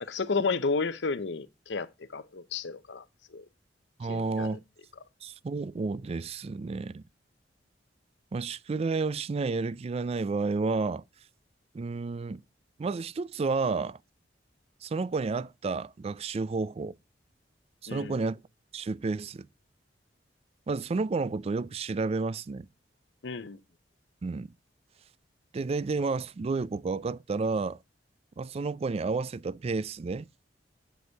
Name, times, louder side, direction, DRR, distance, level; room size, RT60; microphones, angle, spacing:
voice 1, 0.0-3.0 3.3-3.4 4.0-4.5 17.9-18.2 23.2-23.6, left 4 dB, 75° left, 0.7 m, -32 dB
voice 2, 4.0-4.6 5.2-7.0 8.3-11.0 11.7-12.4 12.8-14.0 14.8-17.0 17.8-18.4 18.7-19.5 20.7-22.7 24.2-24.5 25.5-27.8 28.4-30.3, right 4 dB, 35° right, 0.3 m, -31 dB
7.7 x 5.3 x 3.4 m
head